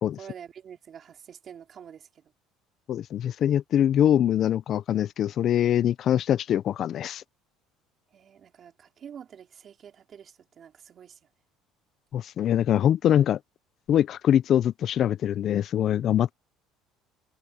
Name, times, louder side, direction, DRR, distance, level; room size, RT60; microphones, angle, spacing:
voice 1, 0.2-2.1 8.1-11.2, right 8 dB, 35° right, 4.6 m, -46 dB
voice 2, 2.9-7.2 12.1-13.4 13.9-16.3, left 10 dB, 40° left, 0.4 m, -23 dB
cardioid pair, 150°, 0 cm